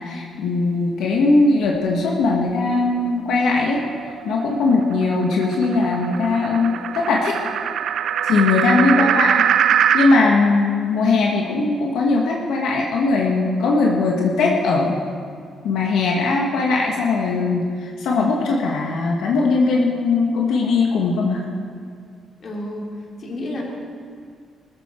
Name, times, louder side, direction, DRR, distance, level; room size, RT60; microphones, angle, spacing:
voice 1, 0.0-7.4 8.2-9.3 9.9-15.0 15.6-21.4, left 3 dB, 85° left, -1 dB, 1.6 m, -19 dB
sound 1, 3.5-10.2, right 9 dB, 65° right, 0.4 m, -23 dB
voice 2, 8.9-9.2 22.4-22.9 23.2-23.6, left 1 dB, 45° left, -2 dB, 3.3 m, -30 dB
21.0 x 13.5 x 4.5 m, 2.1 s
cardioid pair, 140°, 0 cm